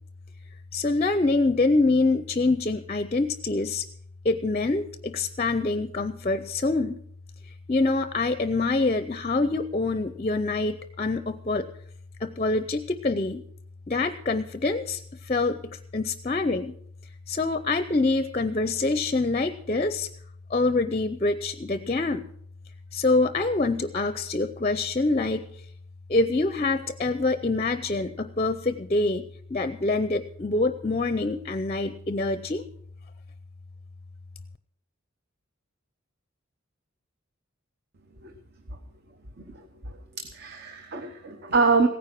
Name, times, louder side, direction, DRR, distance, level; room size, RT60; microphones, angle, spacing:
voice 1, 0.7-3.8 4.2-7.0 7.7-11.7 12.2-13.4 13.9-15.0 15.2-16.7 17.3-20.1 20.5-22.2 22.9-25.5 26.1-32.6, left 3 dB, 30° left, 12 dB, 0.5 m, -25 dB
voice 2, 39.9-41.9, right 4 dB, 50° right, 6 dB, 1.0 m, -25 dB
16.5 x 9.8 x 5.9 m, 0.64 s
head